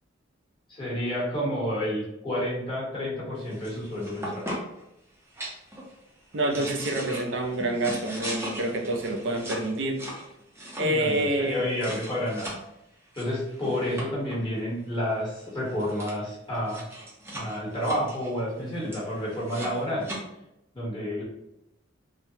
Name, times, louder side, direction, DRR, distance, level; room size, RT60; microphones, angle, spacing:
voice 1, 0.7-4.4 10.8-12.6 13.2-16.8 17.3-20.1 20.7-21.2, equal, 25° left, -6 dB, 1.1 m, -30 dB
sound 1, 3.4-4.8 5.3-5.9 6.3-12.6 13.1-14.4 15.4-15.5 15.7-16.1 16.5-20.2, right 1 dB, 10° right, 0.6 m, -39 dB
voice 2, 6.3-10.0 10.8-11.6, right 1 dB, 65° right, 3 dB, 0.5 m, -27 dB
3.2 x 2.1 x 2.7 m, 0.86 s
head